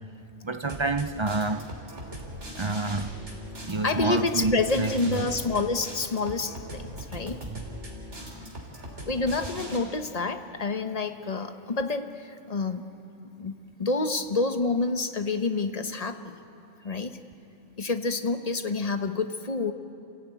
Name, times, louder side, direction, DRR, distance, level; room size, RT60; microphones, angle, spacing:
voice 1, 0.4-1.7 2.6-3.1 3.6-5.3 7.5-7.6, right 3 dB, 30° right, 0.6 m, -28 dB
sound 1, 0.7-9.8, equal, 75° right, 4.0 m, -40 dB
voice 2, 3.8-7.4 9.1-12.8 13.4-16.3 16.8-17.1 17.8-19.7, left 3 dB, 35° left, 1.0 m, -28 dB
28.5 x 16.0 x 9.2 m
omnidirectional pair, 1.2 m